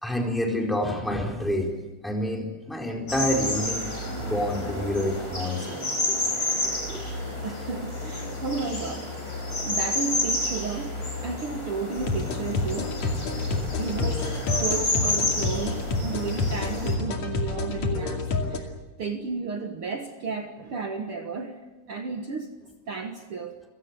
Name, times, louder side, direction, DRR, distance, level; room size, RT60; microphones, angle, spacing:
voice 1, 0.0-1.7 2.0-3.9 4.2-6.2 6.6-7.1, left 1 dB, ahead, 1 dB, 3.8 m, -28 dB
sound 1, 3.1-17.0, left 2 dB, 25° left, 5.1 m, -30 dB
voice 2, 7.4-12.9 13.8-18.2 18.5-18.7 19.0-21.6 21.9-22.5 22.9-23.6, right 4 dB, 55° right, 5 dB, 1.8 m, -33 dB
sound 2, 12.0-18.6, left 3 dB, 55° left, 3.5 m, -29 dB
29.0 x 17.0 x 8.2 m, 1.2 s
omnidirectional pair, 3.9 m